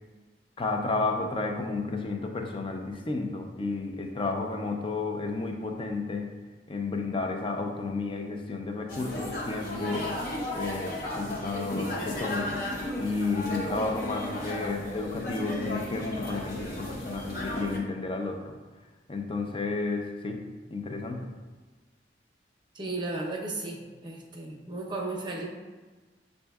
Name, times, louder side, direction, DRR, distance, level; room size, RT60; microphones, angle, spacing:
voice 1, 0.6-6.3 6.7-10.2 10.5-12.6 13.0-18.6 19.1-21.3, left 3 dB, 30° left, 3 dB, 0.5 m, -32 dB
sound 1, 8.9-17.8, left 1 dB, 55° left, 1.0 m, -34 dB
voice 2, 22.7-25.4, right 2 dB, 25° right, -1 dB, 0.7 m, -35 dB
7.8 x 2.6 x 2.3 m, 1.3 s
head